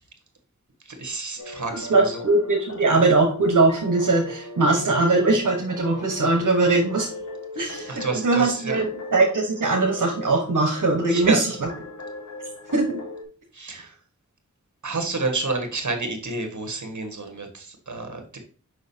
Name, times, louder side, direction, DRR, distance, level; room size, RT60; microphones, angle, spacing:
voice 1, 0.9-2.2 7.5-8.9 11.1-11.4 13.5-14.0 14.8-18.4, right 3 dB, 70° right, 5 dB, 1.6 m, -29 dB
sound 1, 1.4-13.2, left 2 dB, 60° left, 1.2 m, -38 dB
voice 2, 1.9-7.1 7.6-11.5 12.7-13.0, right 3 dB, 90° right, 0 dB, 1.1 m, -21 dB
6.3 x 5.5 x 2.7 m, 0.41 s
wide cardioid pair, 55°, 31 cm